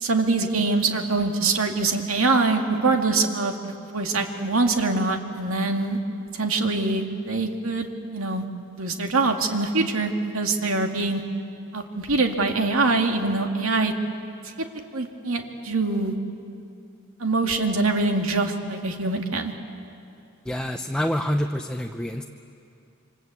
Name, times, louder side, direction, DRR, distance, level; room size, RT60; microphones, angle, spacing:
voice 1, 0.0-3.5 3.9-6.0 6.3-8.4 8.8-11.2 11.7-13.9 14.9-16.1 17.2-19.5, right 3 dB, 85° right, 4 dB, 2.3 m, -24 dB
voice 2, 20.5-22.2, equal, 5° left, 4 dB, 0.7 m, -27 dB
28.0 x 25.5 x 8.3 m, 2.6 s
head